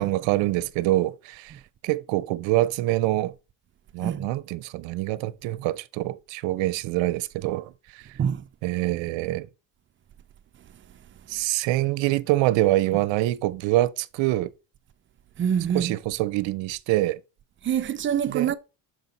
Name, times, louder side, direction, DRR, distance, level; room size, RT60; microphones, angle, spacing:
voice 1, 0.0-1.6 1.8-3.3 3.9-8.0 8.6-9.5 11.3-14.5 15.7-17.2 18.3-18.5, right 16 dB, 65° right, 0.6 m, -25 dB
voice 2, 15.4-16.0 17.6-18.6, right 8 dB, 25° right, 0.4 m, -25 dB
6.5 x 4.0 x 4.0 m
cardioid pair, 105°, 50 cm